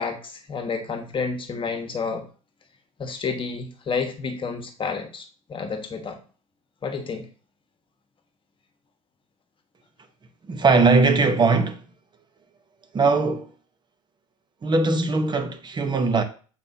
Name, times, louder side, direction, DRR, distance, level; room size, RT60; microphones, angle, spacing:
voice 1, 0.0-2.2 3.0-6.2 6.8-7.3, left 5 dB, 30° left, 1.4 m, -30 dB
voice 2, 10.5-11.8 12.9-13.5 14.6-16.2, right 3 dB, 25° right, 1.1 m, -20 dB
7.8 x 4.4 x 2.8 m
hypercardioid pair, 75°, 17 cm